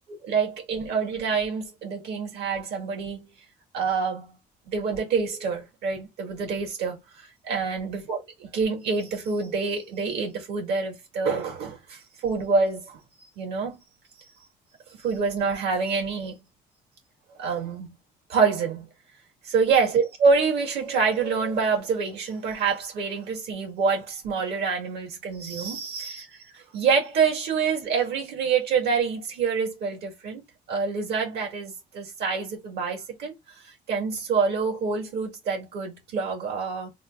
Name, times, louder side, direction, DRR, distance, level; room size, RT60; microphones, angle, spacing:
voice 1, 0.2-3.3 3.7-4.3 4.7-13.0 13.4-13.8 15.0-16.4 17.4-17.9 18.3-18.9 19.4-30.4 30.7-33.3 33.6-36.9, right 5 dB, 75° right, 2.1 m, -26 dB
3.7 x 2.2 x 3.4 m
cardioid pair, 110°, 17 cm